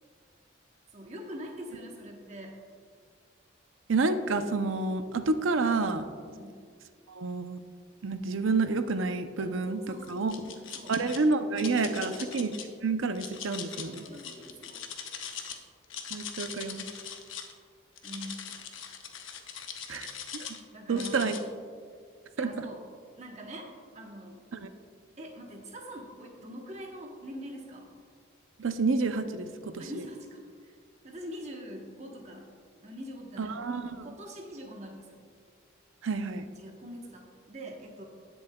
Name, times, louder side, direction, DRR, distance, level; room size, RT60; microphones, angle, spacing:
voice 1, 0.9-2.6 6.3-6.6 9.4-11.0 11.9-12.2 13.8-14.9 15.2-15.6 18.0-18.5 20.7-21.3 22.4-22.8 23.2-24.4 25.2-27.9 29.8-30.8 31.0-32.5 32.8-35.3 36.6-38.0, equal, 35° right, 1 dB, 1.1 m, -44 dB
voice 2, 3.9-6.1 7.1-7.6 8.0-9.8 10.1-10.3 10.9-12.5 12.8-14.1 16.1-16.9 19.9-20.1 20.3-20.5 20.9-21.4 22.4-22.7 24.5-24.7 28.6-30.0 33.4-34.1 36.0-36.5, right 3 dB, 80° right, 9 dB, 0.6 m, -29 dB
sound 1, 10.0-11.2 11.6-12.6 13.1-15.6 15.8-17.5 18.0-20.6 21.0-21.4, left 8 dB, 80° left, 0.9 m, -41 dB
19.0 x 7.0 x 2.3 m, 2.1 s
head